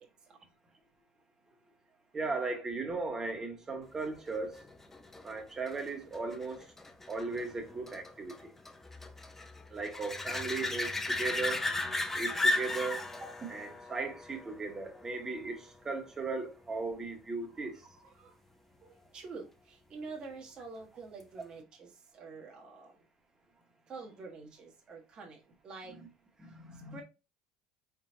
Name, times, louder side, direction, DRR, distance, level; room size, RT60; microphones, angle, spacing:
voice 1, 2.1-4.6 5.2-6.7 7.1-8.5 9.7-11.7 12.1-17.7 25.9-26.0 26.4-27.0, right 3 dB, 25° right, 1.3 m, -37 dB
sound 1, 4.3-15.6 21.2-21.3, left 2 dB, 15° left, 0.6 m, -36 dB
voice 2, 17.5-18.4 18.8-22.9 23.9-26.0 26.7-27.0, right 4 dB, 40° right, 1.3 m, -47 dB
3.9 x 3.9 x 2.7 m
supercardioid pair, 100°, 2 cm